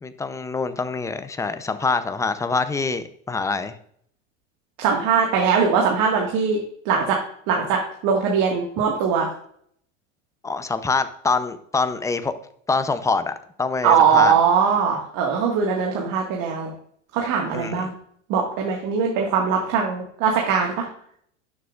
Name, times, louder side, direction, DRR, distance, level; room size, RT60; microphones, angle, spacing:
voice 1, 0.0-3.7 10.4-12.3 12.7-13.3 13.6-14.3 17.5-17.9, left 4 dB, 10° left, 11 dB, 0.6 m, -25 dB
voice 2, 4.8-6.6 6.9-7.2 7.5-9.3 13.8-16.7 17.1-18.0 18.3-20.9, right 6 dB, 55° right, 0 dB, 1.8 m, -21 dB
12.0 x 7.2 x 2.5 m, 0.64 s
hypercardioid pair, 105°, 40 cm